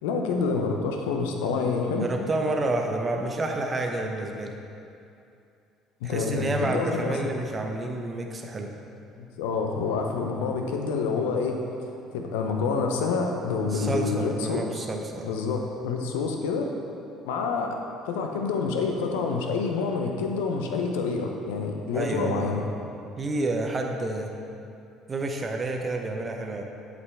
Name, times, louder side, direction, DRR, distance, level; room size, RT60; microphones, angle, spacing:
voice 1, 0.0-2.1 6.0-7.2 9.2-11.6 12.1-14.9 15.2-16.7 17.2-17.8 18.0-22.6, left 4 dB, 85° left, 3 dB, 0.6 m, -27 dB
voice 2, 2.0-4.5 6.0-8.7 13.7-15.4 21.9-22.6 23.2-24.3 25.1-26.6, right 2 dB, 30° right, 2 dB, 0.8 m, -29 dB
8.1 x 5.1 x 3.4 m, 2.6 s
hypercardioid pair, 70°, 0 cm